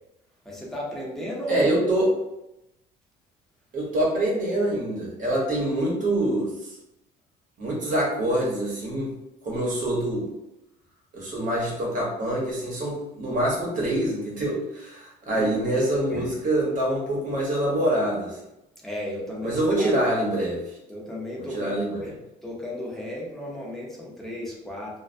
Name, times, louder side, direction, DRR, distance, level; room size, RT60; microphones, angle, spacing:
voice 1, 0.4-1.7 15.3-15.5 16.1-16.3 18.8-19.9 20.9-22.1 22.4-25.0, left 1 dB, ahead, -4 dB, 0.7 m, -34 dB
voice 2, 1.5-2.1 3.7-6.8 7.6-9.1 9.4-10.3 11.1-18.4 19.4-20.6 21.5-22.0, right 1 dB, 50° right, -3 dB, 1.0 m, -25 dB
2.2 x 2.1 x 2.5 m, 0.89 s
cardioid pair, 110°, 17 cm